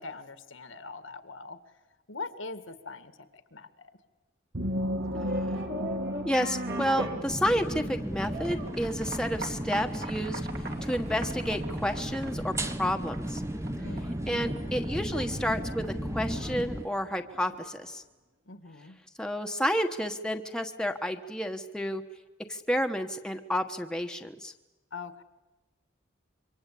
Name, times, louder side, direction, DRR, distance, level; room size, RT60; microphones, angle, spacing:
voice 1, 0.0-1.6 2.1-3.1 3.5-3.9 13.8-14.8 15.1-15.3 18.5-19.0 24.9-25.2, left 3 dB, 75° left, 10 dB, 2.0 m, -42 dB
sound 1, 4.5-8.1, equal, 85° right, 3.1 m, -34 dB
sound 2, 5.0-17.8, right 2 dB, 55° right, 3.3 m, -41 dB
voice 2, 6.2-10.4 10.8-12.5 12.8-13.4 14.3-18.0 19.2-22.0 22.5-24.5, equal, 5° left, 4 dB, 1.3 m, -30 dB
sound 3, 7.3-16.8, equal, 15° right, 1.3 m, -35 dB
27.0 x 24.5 x 8.6 m, 1.1 s
head